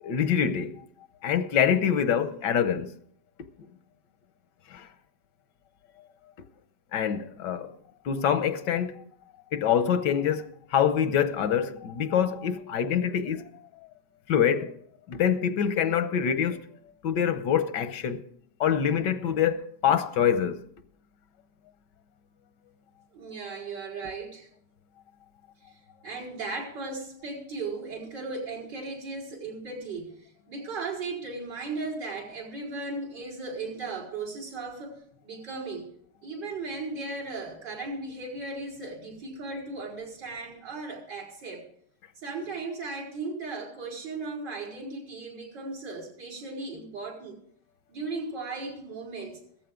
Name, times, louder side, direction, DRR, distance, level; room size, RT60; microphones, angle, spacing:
voice 1, 0.0-0.8 1.2-2.9 4.7-4.9 6.9-7.7 8.0-9.0 9.5-13.5 14.3-14.8 15.1-16.7 17.0-18.2 18.6-20.6, left 8 dB, 85° left, 1.5 m, -25 dB
voice 2, 23.1-24.5 25.7-35.9 36.2-41.6 42.2-47.4 47.9-49.4, right 3 dB, 85° right, 5.3 m, -36 dB
16.5 x 14.0 x 3.7 m
omnidirectional pair, 1.8 m